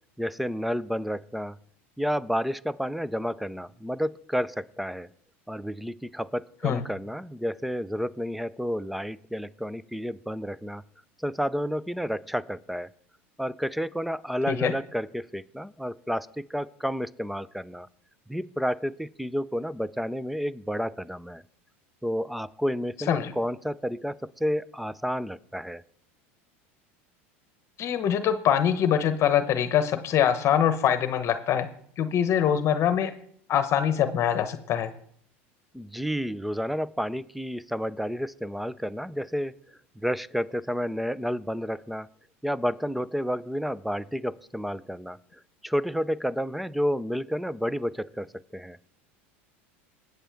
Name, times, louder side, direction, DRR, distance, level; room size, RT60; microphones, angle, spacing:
voice 1, 0.2-1.6 2.0-5.1 5.5-10.8 11.2-12.9 13.4-17.9 18.3-21.4 22.0-25.8 35.7-39.5 40.0-42.1 42.4-45.2 45.6-48.3 48.5-48.8, equal, ahead, 19 dB, 0.4 m, -30 dB
voice 2, 27.8-31.7 32.0-33.1 33.5-34.9, left 9 dB, 45° left, 10 dB, 1.0 m, -24 dB
20.0 x 8.1 x 3.5 m, 0.64 s
hypercardioid pair, 100°, 7 cm